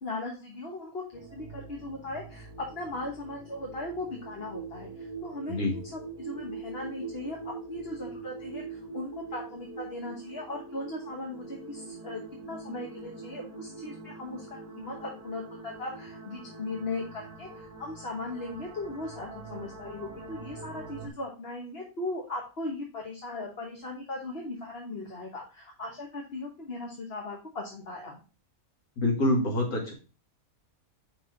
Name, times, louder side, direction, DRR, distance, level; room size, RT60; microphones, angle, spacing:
voice 1, 0.0-28.2, left 2 dB, 45° left, -1 dB, 1.4 m, -38 dB
sound 1, 1.1-21.1, right 4 dB, 30° right, 1.8 m, -43 dB
voice 2, 29.0-29.9, left 1 dB, 80° left, -2 dB, 2.7 m, -26 dB
5.9 x 4.1 x 5.2 m, 0.32 s
omnidirectional pair, 1.5 m